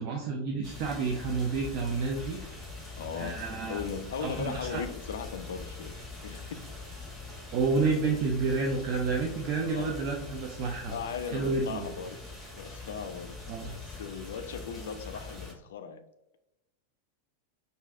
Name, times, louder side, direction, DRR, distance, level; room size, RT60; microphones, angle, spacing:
voice 1, 0.0-2.4 3.1-3.8 4.2-4.8 7.5-10.9 11.3-11.9 13.5-13.7, right 4 dB, 40° right, 0.5 m, -30 dB
Heavy Rain Long, 0.6-15.5, left 3 dB, ahead, 1.4 m, -43 dB
voice 2, 3.0-3.4 3.7-6.6 9.6-10.0 10.9-12.2 12.5-13.4 13.6-16.0, left 6 dB, 60° left, 0.4 m, -38 dB
5.5 x 2.6 x 2.4 m
figure-of-eight pair, 90°, 0 cm